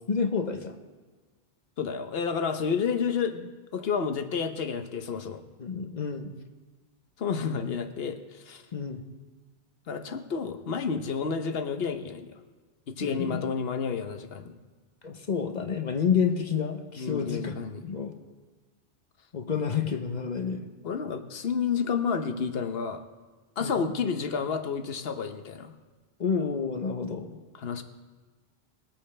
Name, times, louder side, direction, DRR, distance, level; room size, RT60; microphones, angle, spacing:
voice 1, 0.1-0.8 5.6-6.3 8.7-9.0 13.0-13.4 15.0-17.6 17.8-18.1 19.3-20.7 23.6-23.9 26.2-27.4, left 6 dB, 50° left, 6 dB, 0.9 m, -29 dB
voice 2, 1.8-5.4 7.2-8.6 9.9-12.4 12.9-14.6 17.0-17.8 20.8-23.0 23.6-25.7 27.6-27.8, left 6 dB, 70° left, 8 dB, 1.1 m, -30 dB
21.0 x 8.7 x 3.3 m, 1.3 s
omnidirectional pair, 1.0 m